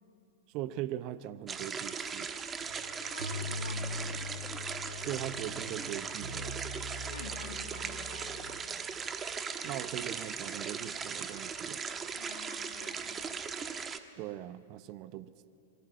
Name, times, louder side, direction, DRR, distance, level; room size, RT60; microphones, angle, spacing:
voice 1, 0.5-2.3 5.0-6.6 9.6-11.8 14.2-15.5, right 13 dB, 40° right, 15 dB, 0.8 m, -40 dB
sound 1, 1.5-14.0, right 6 dB, 20° right, 1.4 m, -38 dB
sound 2, 2.6-8.3, left 2 dB, 70° right, 5.3 m, -42 dB
voice 2, 3.0-4.4 7.1-9.0 12.1-13.5, left 6 dB, 65° left, 5 dB, 2.6 m, -50 dB
27.5 x 23.0 x 8.4 m, 2.7 s
figure-of-eight pair, 100°, 0 cm